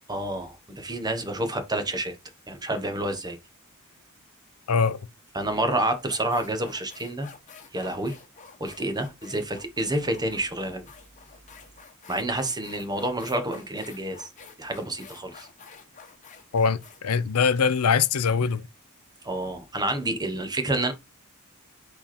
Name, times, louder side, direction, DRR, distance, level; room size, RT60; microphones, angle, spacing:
voice 1, 0.1-2.2 2.5-3.4 5.3-7.3 7.7-8.2 8.6-10.8 12.1-14.3 14.6-15.5 19.2-20.9, right 1 dB, 20° right, 1.2 m, -29 dB
voice 2, 4.7-5.0 16.5-18.6, left 5 dB, 80° left, 0.6 m, -22 dB
sound 1, 6.0-18.3, left 5 dB, 35° left, 1.2 m, -49 dB
5.5 x 4.4 x 4.3 m
head